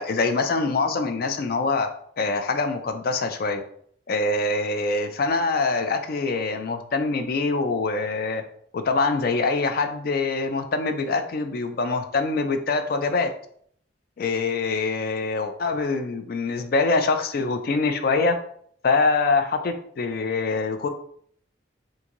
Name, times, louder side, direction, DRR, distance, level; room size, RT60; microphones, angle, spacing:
voice 1, 0.0-1.9 2.2-3.6 4.1-8.4 8.7-13.3 14.2-18.3 18.8-20.9, left 3 dB, 50° left, 7 dB, 0.3 m, -24 dB
3.6 x 2.6 x 2.9 m, 0.63 s
head